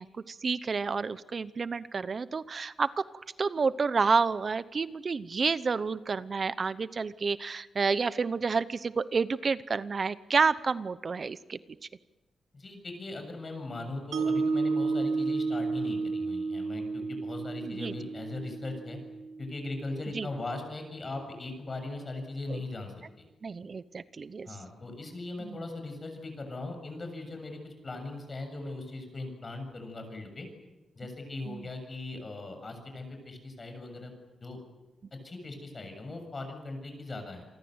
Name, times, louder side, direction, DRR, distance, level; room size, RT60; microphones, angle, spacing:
voice 1, 0.0-3.0 3.4-11.6 17.7-17.9 20.1-20.3 22.5-22.6 23.4-24.5 25.4-25.6 31.5-31.6, right 5 dB, 40° right, 15 dB, 0.8 m, -29 dB
voice 2, 12.5-19.0 19.4-22.9 24.5-30.5 30.9-34.1 34.4-34.6 35.2-37.5, left 2 dB, 30° left, 5 dB, 7.1 m, -39 dB
Mallet percussion, 14.1-20.3, right 4 dB, 80° right, 1.8 m, -32 dB
28.0 x 24.0 x 8.0 m, 1.1 s
wide cardioid pair, 125°, 0 cm